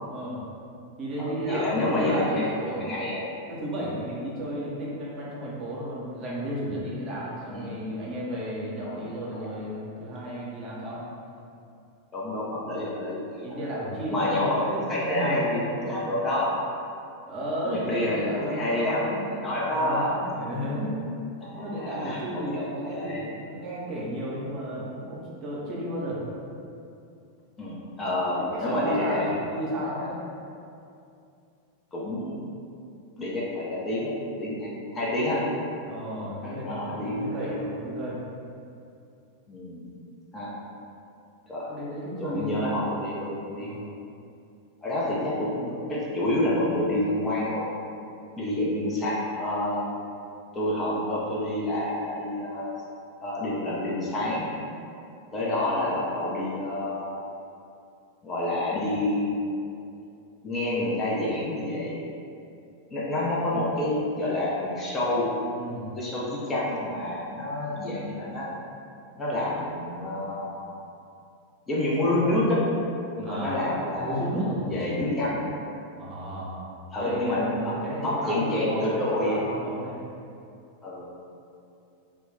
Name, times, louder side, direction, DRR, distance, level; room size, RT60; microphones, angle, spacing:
voice 1, 0.1-0.4 1.0-2.9 3.5-11.0 13.4-16.1 17.3-21.0 21.6-23.2 23.5-26.2 28.4-30.2 34.9-35.4 35.8-38.2 41.7-42.6 43.6-43.8 65.5-65.9 73.2-73.7 74.0-75.0 76.0-76.6 76.9-80.0, equal, 30° right, -6 dB, 0.6 m, -33 dB
voice 2, 1.2-2.4 2.8-3.2 7.5-7.7 8.8-9.1 9.3-9.5 12.1-13.7 14.1-16.5 17.6-20.2 21.4-23.3 27.6-29.2 30.0-30.1 31.9-32.4 33.2-34.1 34.4-35.4 36.4-37.7 39.5-39.9 40.3-40.5 41.5-41.7 42.2-43.7 44.8-47.7 48.3-49.8 50.5-52.7 53.2-54.5 55.3-57.2 58.2-59.3 60.4-62.1 62.9-65.3 65.9-68.5 69.2-70.7 71.7-72.6 73.2-74.3 74.7-75.4 76.9-77.7 78.0-79.6 80.8-81.2, left 1 dB, 20° left, -6 dB, 0.5 m, -28 dB
2.2 x 2.0 x 3.4 m, 2.6 s
figure-of-eight pair, 90°, 0 cm